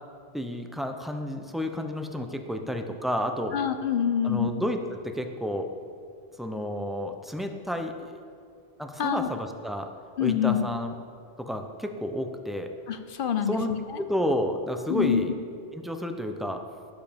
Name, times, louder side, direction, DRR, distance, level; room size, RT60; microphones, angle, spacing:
voice 1, 0.3-3.5 4.2-5.7 6.4-8.2 8.8-9.9 10.2-10.9 11.4-12.7 13.5-13.7 14.0-15.3 15.7-16.6, equal, ahead, 5 dB, 0.3 m, -31 dB
voice 2, 3.5-4.6 9.0-9.3 10.2-10.7 12.9-14.0 14.9-15.2, left 8 dB, 60° left, 9 dB, 0.7 m, -26 dB
12.0 x 7.3 x 5.1 m, 2.4 s
omnidirectional pair, 1.1 m